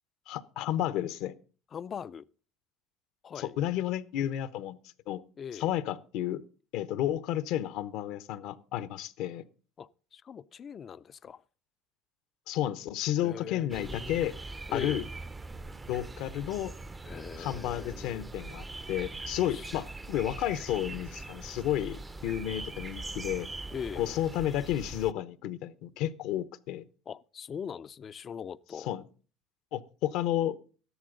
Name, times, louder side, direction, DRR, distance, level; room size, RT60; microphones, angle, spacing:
voice 1, 0.3-1.3 3.4-4.8 5.1-5.2 5.5-6.4 6.7-9.4 12.5-14.4 14.7-15.0 15.9-16.7 17.4-23.5 24.0-26.8 28.9-29.0 29.7-30.6, left 12 dB, 70° left, 0.8 m, -32 dB
voice 2, 1.7-2.2 3.2-3.6 5.4-5.7 9.8-11.4 13.2-14.3 14.7-15.1 17.0-18.3 19.5-19.7 23.7-24.1 27.1-28.9, left 7 dB, 35° left, 0.5 m, -41 dB
sound 1, 13.7-25.1, right 2 dB, 20° right, 0.6 m, -42 dB
13.5 x 11.5 x 3.9 m
supercardioid pair, 95°, 0 cm